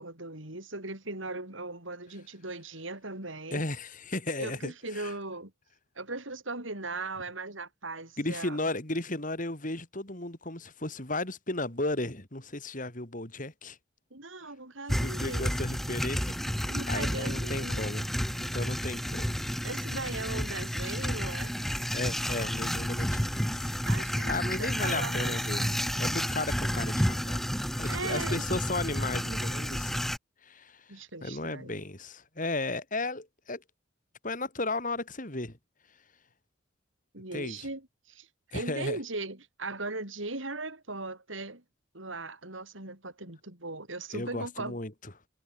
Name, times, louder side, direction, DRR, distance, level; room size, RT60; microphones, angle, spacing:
voice 1, 0.0-3.6 4.4-5.5 5.9-8.6 14.1-15.5 16.7-17.9 19.6-21.5 23.9-24.3 24.6-25.4 27.9-28.4 30.9-31.8 37.1-38.3 38.5-41.6 41.9-44.8, right 2 dB, 80° right, 6.9 m, -38 dB
voice 2, 3.5-5.1 8.2-13.8 15.0-18.1 18.4-19.4 21.9-23.7 24.3-27.4 27.8-30.0 30.4-33.6 34.2-35.6 37.3-37.7 38.5-39.0 44.1-45.1, left 2 dB, 40° left, 4.0 m, -35 dB
sound 1, 14.9-30.2, equal, ahead, 0.7 m, -31 dB
head